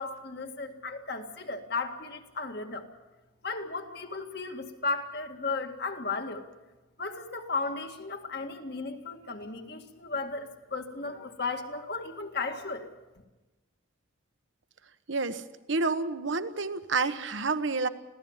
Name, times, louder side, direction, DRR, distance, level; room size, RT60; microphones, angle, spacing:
voice 1, 0.0-2.9 3.4-6.4 7.0-12.9, left 3 dB, 50° left, 4 dB, 2.0 m, -35 dB
voice 2, 15.1-15.4 15.7-17.9, right 3 dB, 65° right, 11 dB, 1.1 m, -29 dB
26.0 x 17.0 x 7.3 m, 1.1 s
head